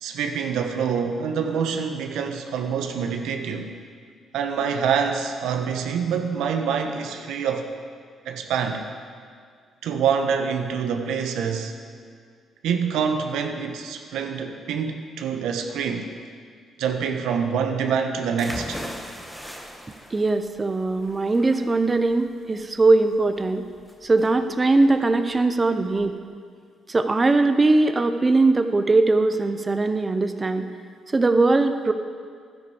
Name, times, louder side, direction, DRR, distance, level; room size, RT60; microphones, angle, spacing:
voice 1, 0.0-3.8 4.3-7.7 8.3-8.8 9.8-11.7 12.6-16.1 16.8-18.8, right 6 dB, 85° right, 5 dB, 0.9 m, -26 dB
sound 1, 18.4-26.1, equal, ahead, 1.3 m, -40 dB
voice 2, 20.1-23.6 24.0-26.1 26.9-30.7 31.1-31.9, right 3 dB, 25° right, 8 dB, 0.6 m, -20 dB
12.0 x 9.9 x 4.9 m, 2.1 s
cardioid pair, 90°, 0 cm